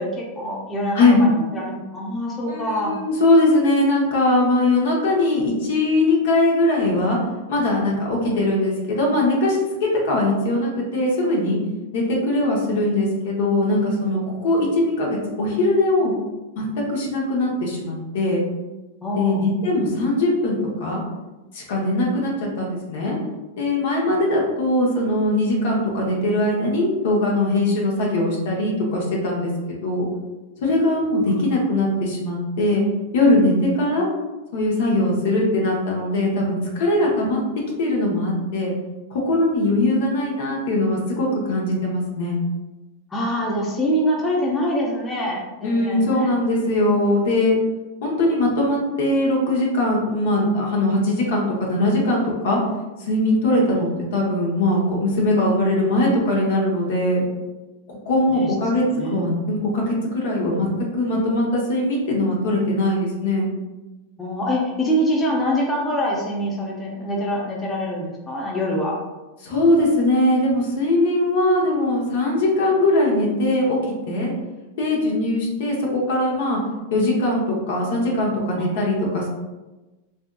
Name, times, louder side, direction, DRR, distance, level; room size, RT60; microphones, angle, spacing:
voice 1, 0.0-2.9 19.0-19.5 43.1-46.3 58.3-58.5 58.8-59.4 64.2-69.0 78.6-78.8, equal, 15° left, -3 dB, 0.6 m, -25 dB
voice 2, 2.4-7.2 7.5-11.6 11.9-16.1 16.6-18.4 19.2-21.0 21.5-23.2 23.6-30.1 30.6-32.8 33.1-34.1 34.5-37.4 37.8-38.7 39.1-42.4 45.6-47.6 48.0-52.6 53.0-57.2 58.1-58.8 59.1-60.7 60.9-63.5 69.4-73.8 74.1-74.3 74.8-76.6 76.9-79.3, left 1 dB, 65° left, -2 dB, 0.7 m, -21 dB
2.6 x 2.4 x 2.3 m, 1.1 s
hypercardioid pair, 110°, 0 cm